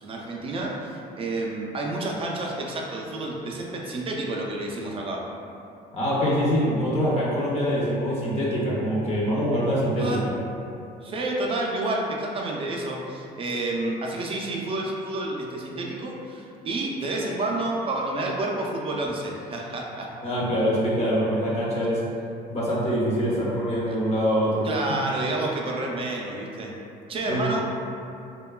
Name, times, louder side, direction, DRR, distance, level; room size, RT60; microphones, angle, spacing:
voice 1, 0.0-5.3 10.0-10.3 11.0-20.1 23.9-24.0 24.6-26.8 27.1-27.6, right 2 dB, 35° right, -1 dB, 0.4 m, -29 dB
voice 2, 5.9-10.2 20.2-22.0 22.5-24.7 27.3-27.4, equal, 40° left, -6 dB, 0.6 m, -24 dB
2.9 x 2.2 x 2.2 m, 2.6 s
cardioid pair, 110°, 17 cm